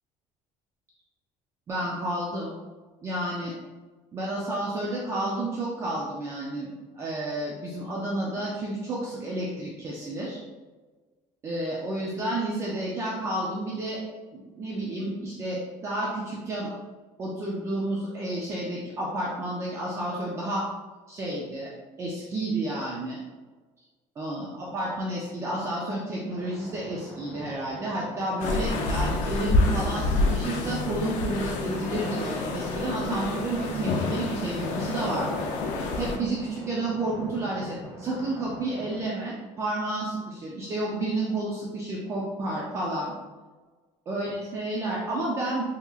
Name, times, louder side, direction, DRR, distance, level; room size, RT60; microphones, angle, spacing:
voice 1, 1.7-2.5 3.0-3.5 4.1-6.7 6.9-10.4 11.4-14.0 14.3-16.7 17.2-20.7 21.1-21.7 22.0-23.2 24.2-35.5 36.0-43.1 44.1-45.6, right 1 dB, 25° right, -4 dB, 0.4 m, -31 dB
sound 1, 26.3-39.0, right 1 dB, 45° right, 1.2 m, -45 dB
sound 2, 28.4-36.2, left 2 dB, 85° left, 0.5 m, -28 dB
3.7 x 2.8 x 2.3 m, 1.3 s
cardioid pair, 180°, 12 cm